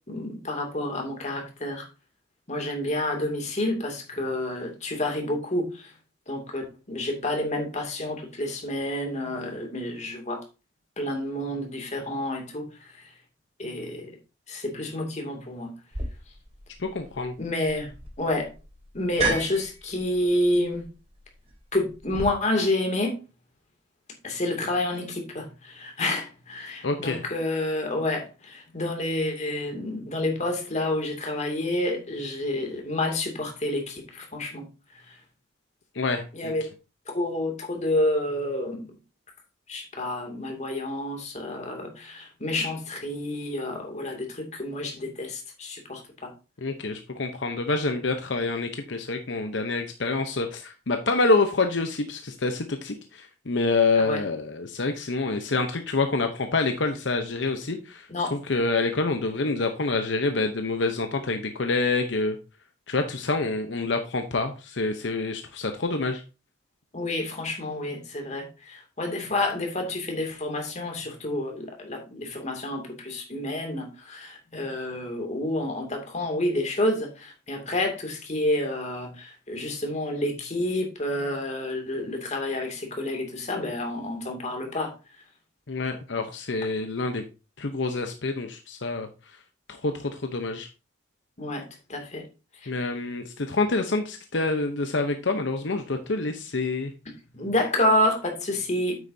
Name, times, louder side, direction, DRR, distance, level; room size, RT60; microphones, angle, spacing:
voice 1, 0.1-1.8 2.5-5.8 6.3-10.4 11.0-12.6 13.6-14.1 14.5-15.7 17.4-17.9 18.2-18.5 18.9-20.8 21.7-23.2 24.2-34.6 36.3-36.6 37.1-38.9 39.7-46.3 54.0-54.2 58.1-58.3 66.9-84.9 91.4-91.6 91.9-92.2 97.3-99.0, left 1 dB, 40° left, 2.5 m, -29 dB
sound 1, 15.9-22.2, right 3 dB, 35° right, 4.2 m, -35 dB
voice 2, 16.8-17.3 26.8-27.2 35.9-36.5 46.6-62.4 62.9-66.2 85.7-87.2 87.6-89.4 89.7-90.7 92.7-96.9, left 3 dB, 75° left, 0.9 m, -27 dB
9.2 x 8.1 x 2.8 m
head